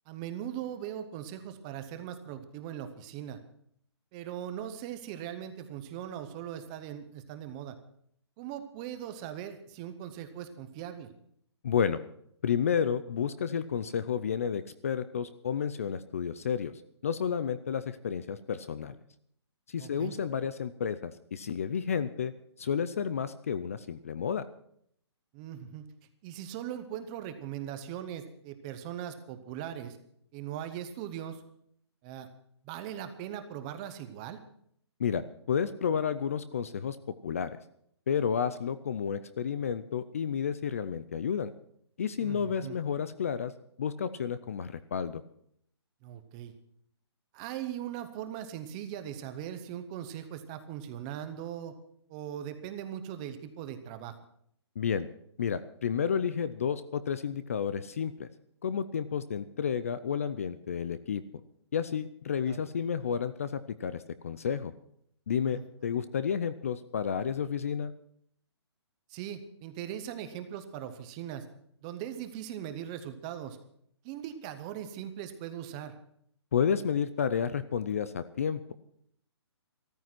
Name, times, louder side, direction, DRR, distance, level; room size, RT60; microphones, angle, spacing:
voice 1, 0.1-3.4 4.1-7.7 8.4-11.1 19.8-20.2 25.3-25.8 26.2-30.0 30.3-31.4 32.0-32.3 32.6-34.4 42.2-42.8 46.0-46.5 47.3-51.7 52.1-54.1 62.4-62.6 65.5-65.6 69.1-71.5 71.8-73.6 74.0-75.9, right 10 dB, 15° right, 9 dB, 0.7 m, -40 dB
voice 2, 11.6-12.0 12.4-16.7 17.0-19.0 19.7-22.3 22.6-24.5 35.0-37.0 37.2-37.5 38.1-41.5 42.0-43.5 43.8-45.2 54.8-55.1 55.4-58.3 58.6-61.2 61.7-64.7 65.3-67.9 76.5-78.7, left 7 dB, 30° left, 14 dB, 0.5 m, -31 dB
14.0 x 13.5 x 6.0 m, 0.67 s
hypercardioid pair, 175°, 15 cm